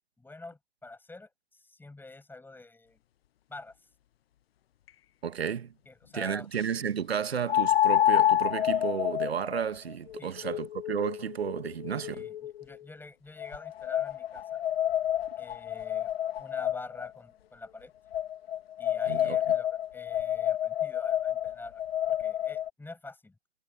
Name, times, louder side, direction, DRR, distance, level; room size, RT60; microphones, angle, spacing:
voice 1, 0.2-3.0 3.5-3.8 5.9-6.5 10.2-10.6 12.1-14.6 15.4-16.1 16.4-17.9 18.8-21.8 22.1-23.3, left 2 dB, 5° left, 6.4 m, -46 dB
sound 1, 4.9-5.0 7.5-12.6 13.4-17.1 18.1-22.7, left 11 dB, 75° left, 0.7 m, -29 dB
voice 2, 5.2-5.7 6.1-12.3 19.1-19.4, right 8 dB, 90° right, 1.3 m, -32 dB
hypercardioid pair, 115°, 30 cm